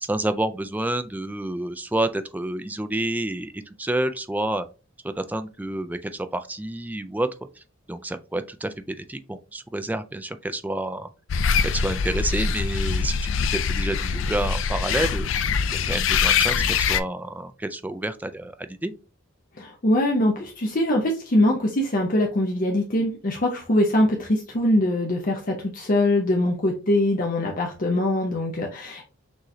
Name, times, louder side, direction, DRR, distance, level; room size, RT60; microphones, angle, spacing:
voice 1, 0.0-4.7 5.2-7.3 7.6-7.7 7.9-11.1 11.7-15.3 15.7-18.9, right 1 dB, 10° right, 0.4 m, -29 dB
sound 1, 11.3-17.0, left 6 dB, 70° left, 0.4 m, -23 dB
voice 2, 19.6-29.1, left 1 dB, 45° left, 0.8 m, -23 dB
6.2 x 3.1 x 2.7 m
head